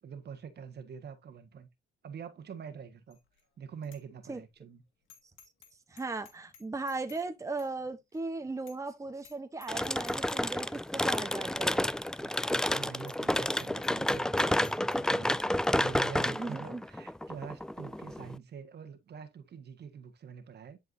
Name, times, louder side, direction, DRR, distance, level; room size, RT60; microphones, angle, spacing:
voice 1, 0.0-1.7 2.0-3.2 3.6-4.8 12.2-20.8, right 7 dB, 55° right, 1.5 m, -45 dB
Bicycle bell, 3.1-3.4 3.8-4.0 4.4-4.5 5.1-5.7 6.0-7.3 7.6-7.7 8.1-8.2 8.7-8.9 9.2-9.4 9.6-10.4 10.9-11.0 11.7-11.8 12.0-12.1 12.5-12.6 13.0-15.0, left 8 dB, 90° left, 2.0 m, -56 dB
voice 2, 5.9-11.9 16.4-16.8, right 3 dB, 15° right, 1.0 m, -37 dB
sound 1, 9.7-18.4, left 1 dB, 5° left, 0.3 m, -30 dB
11.0 x 4.7 x 2.6 m
cardioid pair, 90°, 20 cm